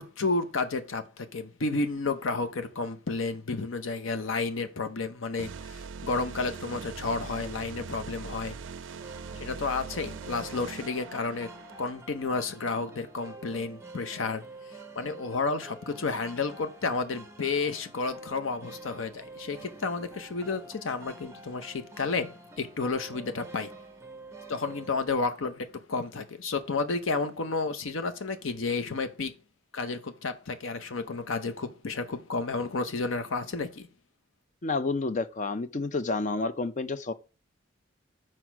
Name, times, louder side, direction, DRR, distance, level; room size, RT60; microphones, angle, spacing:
voice 1, 0.0-8.5 9.4-11.5 11.8-14.4 14.9-23.7 24.5-29.3 29.7-33.9, left 3 dB, 75° left, 0.7 m, -31 dB
sound 1, 5.4-11.9, right 5 dB, 65° right, 0.4 m, -41 dB
sound 2, 9.0-24.9, right 2 dB, 15° right, 0.7 m, -47 dB
voice 2, 34.6-37.1, left 3 dB, 40° left, 0.5 m, -30 dB
6.3 x 4.4 x 6.0 m
head